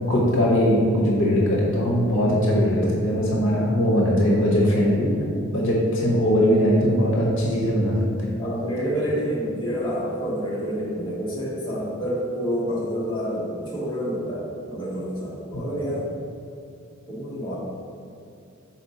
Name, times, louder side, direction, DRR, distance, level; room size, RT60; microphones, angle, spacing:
voice 1, 0.1-5.2 5.5-8.3, equal, 60° left, -3 dB, 1.0 m, -20 dB
voice 2, 8.4-16.2 17.1-17.5, equal, 20° left, -7 dB, 1.1 m, -28 dB
6.0 x 4.3 x 4.1 m, 2.5 s
head